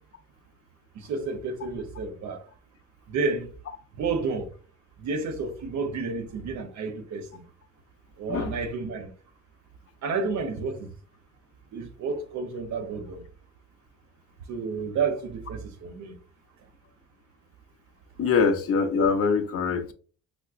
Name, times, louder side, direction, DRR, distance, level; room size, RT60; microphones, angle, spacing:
voice 1, 0.9-2.4 3.1-3.5 3.9-4.5 5.0-7.4 8.2-9.1 10.0-10.9 11.7-13.2 14.5-16.2, right 4 dB, 70° right, 0.7 m, -31 dB
voice 2, 18.2-19.9, left 5 dB, 50° left, 0.5 m, -23 dB
4.8 x 2.0 x 2.3 m
cardioid pair, 90°, 30 cm